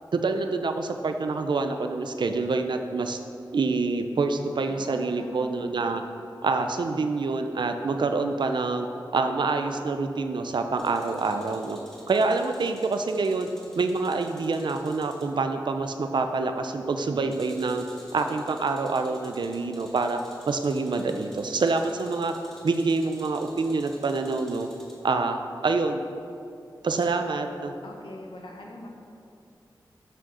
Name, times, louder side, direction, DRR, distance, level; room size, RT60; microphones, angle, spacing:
voice 1, 0.1-3.2 3.5-6.0 6.4-8.9 9.1-11.8 12.1-13.5 13.8-17.8 18.1-20.2 20.5-22.3 22.6-24.7 25.0-26.0 26.8-27.7, right 3 dB, 65° right, 6 dB, 0.5 m, -26 dB
voice 2, 4.7-6.0 27.8-28.9, left 1 dB, 85° left, 1 dB, 1.3 m, -43 dB
sound 1, 10.7-15.3 17.3-25.0 27.0-27.1, equal, 5° left, 2.1 m, -52 dB
6.9 x 6.3 x 6.1 m, 2.7 s
wide cardioid pair, 90°, 8 cm